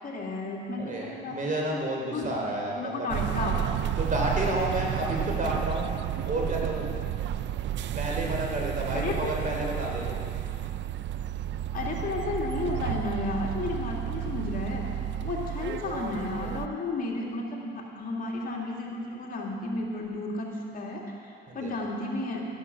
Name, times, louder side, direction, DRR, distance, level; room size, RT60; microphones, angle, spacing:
voice 1, 0.0-1.4 1.7-1.8 2.1-2.3 2.7-3.6 8.9-9.4 11.7-14.9 15.2-22.5, left 2 dB, 45° left, -2 dB, 2.6 m, -33 dB
voice 2, 0.8-3.1 4.0-5.9 6.3-6.9 7.9-10.2 21.5-21.7, right 1 dB, 40° right, -1 dB, 3.4 m, -30 dB
sound 1, 3.1-16.7, right 10 dB, 65° right, 0.4 m, -32 dB
13.0 x 12.5 x 6.2 m, 2.4 s
cardioid pair, 90°, 20 cm